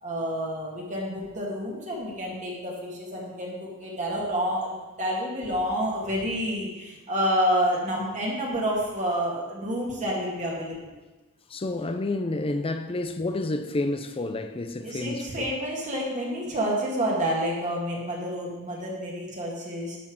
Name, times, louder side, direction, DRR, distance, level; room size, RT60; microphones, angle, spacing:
voice 1, 0.0-10.9 14.8-20.0, equal, 35° right, 2.1 m, -29 dB
voice 2, 11.5-15.5, left 2 dB, 25° left, 0.5 m, -29 dB
11.0 x 4.5 x 6.2 m
head